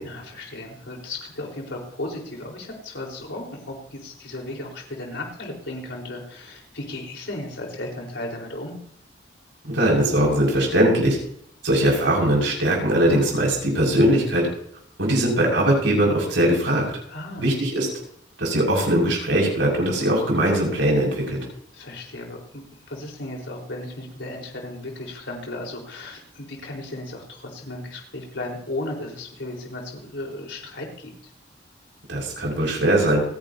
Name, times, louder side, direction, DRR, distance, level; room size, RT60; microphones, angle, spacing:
voice 1, 0.0-8.8 17.1-17.5 21.7-22.6 22.9-31.3, left 2 dB, 80° left, -1 dB, 4.6 m, -35 dB
voice 2, 9.7-11.2 11.6-14.5 15.0-16.9 17.4-17.9 18.4-21.4 32.1-33.2, right 1 dB, 85° right, -2 dB, 6.4 m, -20 dB
29.5 x 10.5 x 2.9 m, 0.68 s
head